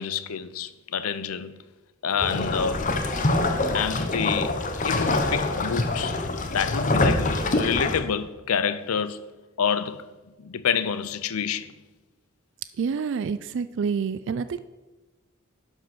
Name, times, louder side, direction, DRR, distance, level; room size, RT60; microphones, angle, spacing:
voice 1, 0.0-1.6 2.0-2.8 3.7-4.6 4.8-6.2 6.5-9.2 9.6-10.1 10.4-11.7, left 7 dB, 85° left, 0.6 m, -28 dB
sound 1, 2.2-8.0, left 2 dB, 35° left, 0.9 m, -25 dB
voice 2, 12.8-14.6, right 6 dB, 55° right, 0.3 m, -28 dB
12.0 x 5.3 x 6.0 m
head